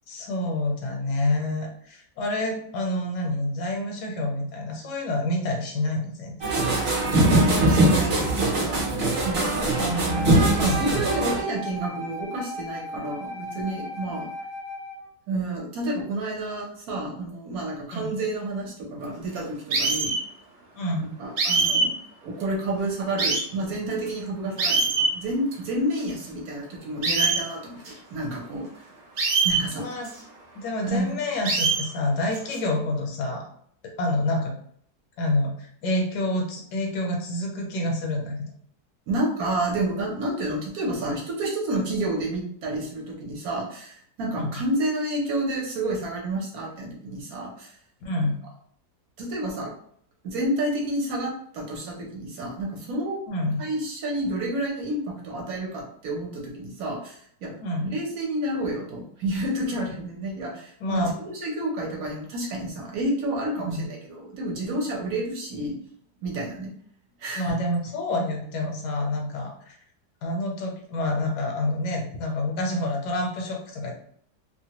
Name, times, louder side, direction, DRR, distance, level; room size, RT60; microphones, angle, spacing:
voice 1, 0.1-6.4 9.8-10.9 17.9-18.1 20.8-21.1 29.8-30.1 30.5-33.5 33.8-34.6 35.2-38.5 44.3-44.5 48.0-48.4 53.3-53.6 57.6-57.9 60.8-61.1 63.6-63.9 67.4-69.8 70.2-73.9, left 1 dB, 75° left, 1 dB, 1.3 m, -28 dB
sound 1, 6.4-11.4, right 1 dB, 45° right, 0.9 m, -22 dB
voice 2, 7.3-8.9 9.2-9.7 10.6-14.3 15.3-20.2 21.2-22.0 22.2-24.8 25.1-27.8 28.1-28.7 29.4-29.9 30.8-31.1 39.1-47.8 49.2-49.7 50.2-53.2 53.6-57.5 57.9-65.8 66.2-66.7 67.2-67.6, right 1 dB, 65° right, -1 dB, 1.1 m, -30 dB
Wind instrument woodwind instrument, 10.1-15.1, left 1 dB, ahead, 0.5 m, -36 dB
sound 2, 19.7-20.2 21.4-21.9 22.4-22.5 23.2-23.4 24.1-24.2 24.6-25.1 25.5-25.6 26.0-26.1 27.0-27.4 27.9-28.0 29.2-29.6 30.0-30.1 31.4-31.9 32.3-32.6, right 4 dB, 80° right, 0.5 m, -23 dB
2.9 x 2.2 x 2.8 m, 0.64 s
omnidirectional pair, 1.8 m